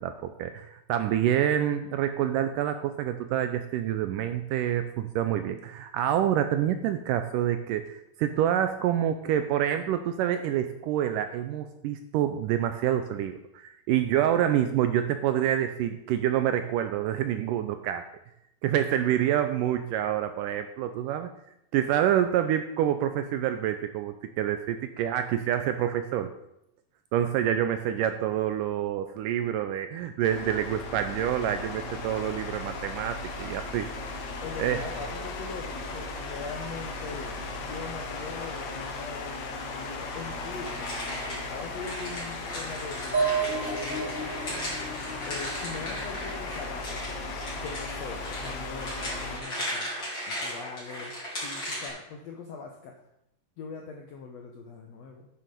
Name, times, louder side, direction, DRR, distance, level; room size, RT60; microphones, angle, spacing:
voice 1, 0.0-18.0 18.6-21.3 21.7-26.3 27.1-33.9 34.6-34.9, right 10 dB, 80° right, 8 dB, 2.0 m, -27 dB
voice 2, 14.1-14.5 34.4-40.9 41.5-44.2 45.3-47.2 47.6-49.9 50.3-51.1 51.4-53.0 53.6-55.3, left 5 dB, 80° left, 2 dB, 1.5 m, -41 dB
sound 1, 30.2-49.4, left 3 dB, 60° left, 2.1 m, -37 dB
sound 2, 40.6-51.9, equal, 30° left, 4.3 m, -37 dB
sound 3, 43.1-46.8, right 4 dB, 20° right, 1.3 m, -32 dB
9.4 x 7.1 x 5.2 m, 0.80 s
omnidirectional pair, 4.2 m